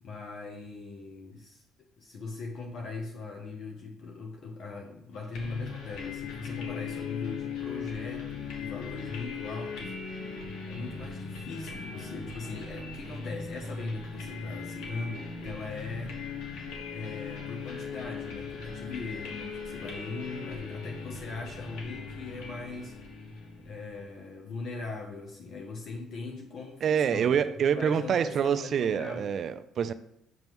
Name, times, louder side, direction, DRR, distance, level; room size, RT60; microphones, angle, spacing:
voice 1, 0.0-1.6 2.0-9.9 10.7-16.2 16.9-27.4 27.7-29.3, left 3 dB, 50° left, 2 dB, 0.9 m, -40 dB
sound 1, 5.3-24.0, left 5 dB, 80° left, 1.4 m, -39 dB
voice 2, 26.8-29.9, right 7 dB, 50° right, 12 dB, 0.4 m, -26 dB
7.8 x 5.3 x 3.1 m, 0.76 s
cardioid pair, 125°, 0 cm